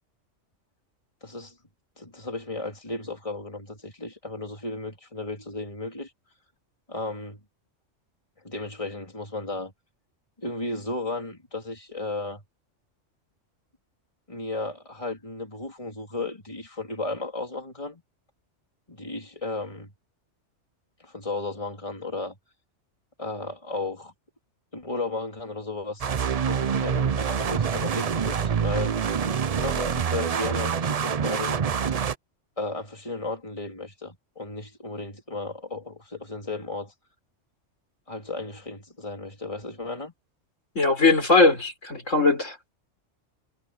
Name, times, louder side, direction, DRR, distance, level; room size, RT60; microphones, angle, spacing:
voice 1, 1.2-1.5 2.0-6.1 6.9-7.4 8.4-9.7 10.4-12.4 14.3-18.0 18.9-19.9 21.0-22.4 23.2-24.1 24.7-26.1 26.4-29.0 29.6-31.6 32.6-36.9 38.1-40.1, left 2 dB, 25° left, 3.7 m, -34 dB
sound 1, 26.0-32.1, right 7 dB, 40° right, 0.6 m, -26 dB
voice 2, 40.8-42.7, left 3 dB, 85° left, 5.3 m, -20 dB
omnidirectional pair, 1.3 m